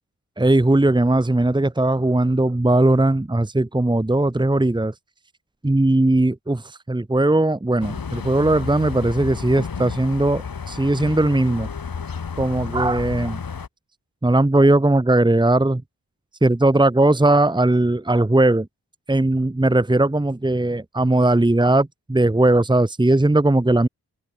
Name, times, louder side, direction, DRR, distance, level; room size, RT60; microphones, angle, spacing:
voice 1, 0.4-4.9 5.6-11.7 12.4-13.4 14.2-15.8 16.4-18.7 19.1-23.9, right 2 dB, 10° right, 1.5 m, -18 dB
sound 1, 7.8-13.7, left 6 dB, 65° left, 7.0 m, -31 dB
open air
cardioid pair, 55°, 37 cm